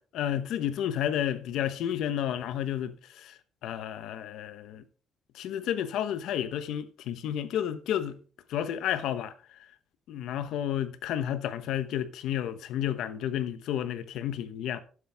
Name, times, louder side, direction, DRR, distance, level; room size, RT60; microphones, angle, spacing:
voice 1, 0.1-4.8 5.3-8.2 8.5-9.3 10.1-14.8, left 10 dB, 80° left, 1.0 m, -31 dB
11.5 x 9.4 x 3.5 m
cardioid pair, 115°, 0 cm